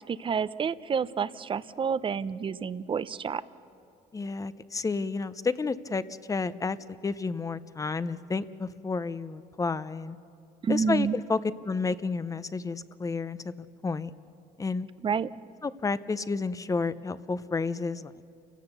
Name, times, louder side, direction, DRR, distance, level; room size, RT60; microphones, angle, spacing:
voice 1, 0.1-3.4 10.6-11.2 15.0-15.3, right 6 dB, 30° right, 16 dB, 0.6 m, -29 dB
voice 2, 4.1-6.0 6.3-6.8 7.0-10.2 10.7-11.4 11.6-14.1 14.6-14.9 15.6-18.1, left 4 dB, 20° left, 15 dB, 0.7 m, -31 dB
29.0 x 16.5 x 6.8 m, 2.5 s
cardioid pair, 110°, 17 cm